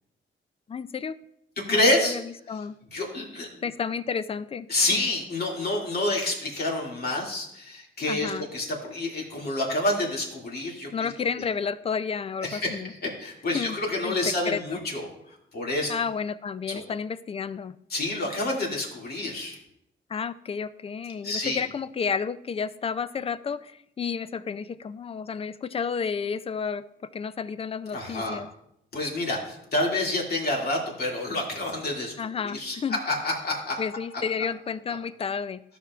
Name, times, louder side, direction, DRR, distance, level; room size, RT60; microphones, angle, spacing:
voice 1, 0.7-1.2 1.7-2.8 3.6-4.7 8.1-8.5 10.9-12.9 13.5-13.8 14.0-14.8 15.9-17.7 20.1-28.5 32.2-33.0 33.8-35.6, left 6 dB, 30° left, 15 dB, 0.4 m, -31 dB
voice 2, 1.6-2.2 2.9-3.6 4.7-11.1 12.4-12.8 13.2-15.9 16.7-16.8 17.9-19.6 21.2-21.6 27.9-28.4 28.9-32.1 32.4-32.8 33.1-33.8, left 2 dB, 50° left, -1 dB, 2.3 m, -28 dB
13.0 x 6.0 x 2.4 m, 0.77 s
cardioid pair, 90°, 20 cm